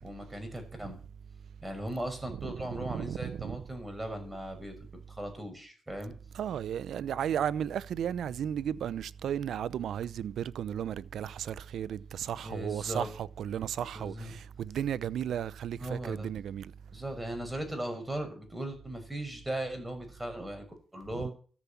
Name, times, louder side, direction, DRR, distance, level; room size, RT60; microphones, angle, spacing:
voice 1, 0.0-1.0 1.6-4.7 5.1-6.1 12.4-13.1 13.9-14.4 15.8-16.3 16.9-20.6 20.9-21.3, right 1 dB, 10° right, 6.0 m, -38 dB
voice 2, 2.3-3.6 6.3-16.7 21.1-21.3, right 9 dB, 85° right, 0.6 m, -34 dB
14.0 x 7.2 x 8.5 m
cardioid pair, 75°, 0 cm